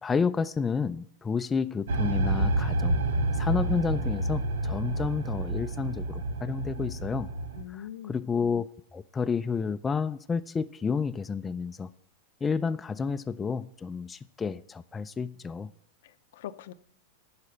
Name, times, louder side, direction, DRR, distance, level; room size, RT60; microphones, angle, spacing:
voice 1, 0.0-3.0 3.4-7.3 7.7-11.9 12.4-15.7, left 5 dB, 15° left, 0.3 m, -30 dB
sound 1, 1.9-7.6, right 2 dB, 85° right, 0.9 m, -29 dB
voice 2, 7.5-8.2 16.0-16.7, left 11 dB, 70° left, 0.6 m, -42 dB
11.0 x 4.8 x 6.7 m
hypercardioid pair, 120°, 0 cm